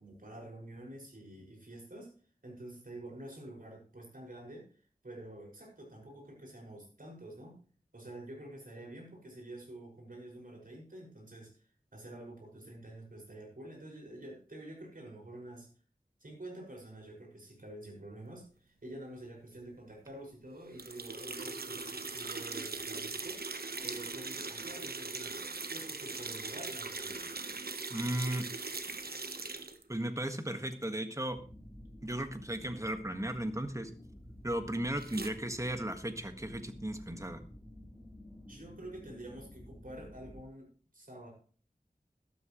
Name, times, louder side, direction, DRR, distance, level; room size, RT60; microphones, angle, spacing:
voice 1, 0.0-2.1 2.4-7.6 7.9-15.7 16.2-23.4 23.8-27.3 38.5-41.3, right 1 dB, 65° right, -1 dB, 5.8 m, -48 dB
sound 1, 20.8-29.8 35.0-35.3, right 3 dB, 85° right, 1.2 m, -40 dB
voice 2, 27.9-28.5 29.9-31.4 32.0-33.9 34.4-37.4, right 1 dB, 20° right, 7 dB, 1.6 m, -35 dB
sound 2, 31.3-40.4, left 1 dB, ahead, 3.2 m, -52 dB
12.5 x 12.5 x 3.1 m, 0.40 s
wide cardioid pair, 55°, 16 cm